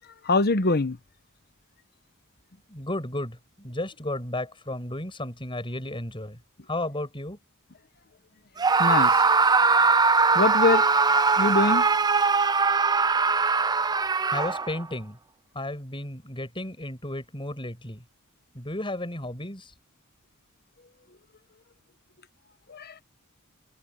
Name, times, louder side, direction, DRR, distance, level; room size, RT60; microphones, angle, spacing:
voice 1, 0.2-1.0 8.8-9.2 10.3-10.9 11.4-11.9 22.7-23.0, left 3 dB, 45° left, 1.1 m, -23 dB
voice 2, 2.7-6.4 6.7-7.4 14.3-15.2 15.5-18.0 18.5-19.7, left 1 dB, 25° left, 7.2 m, -33 dB
Screaming, 8.6-14.8, right 4 dB, 20° right, 0.4 m, -21 dB
head